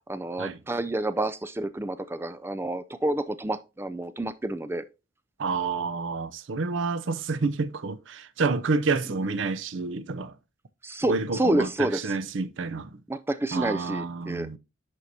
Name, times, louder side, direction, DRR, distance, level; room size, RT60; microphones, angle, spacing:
voice 1, 0.1-4.9 10.8-12.1 13.1-14.5, right 1 dB, 10° right, 0.3 m, -29 dB
voice 2, 5.4-10.4 11.1-13.0 13.5-14.6, right 4 dB, 80° right, 0.6 m, -29 dB
11.0 x 4.6 x 2.7 m
head